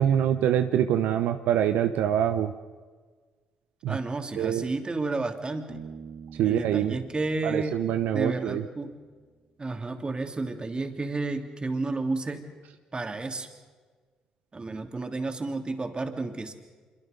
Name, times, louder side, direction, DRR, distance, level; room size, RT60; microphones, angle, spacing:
voice 1, 0.0-2.5 3.8-4.0 4.4-4.7 6.4-7.0 7.4-8.6, right 10 dB, 75° right, 7 dB, 0.8 m, -25 dB
voice 2, 3.9-5.8 6.4-7.8 8.1-8.9 9.6-12.5 12.9-13.5 14.5-16.5, right 3 dB, 30° right, 5 dB, 3.1 m, -31 dB
Bass guitar, 5.7-9.2, right 6 dB, 55° right, 1.6 m, -47 dB
26.0 x 23.5 x 5.3 m, 1.5 s
hypercardioid pair, 55°, 3 cm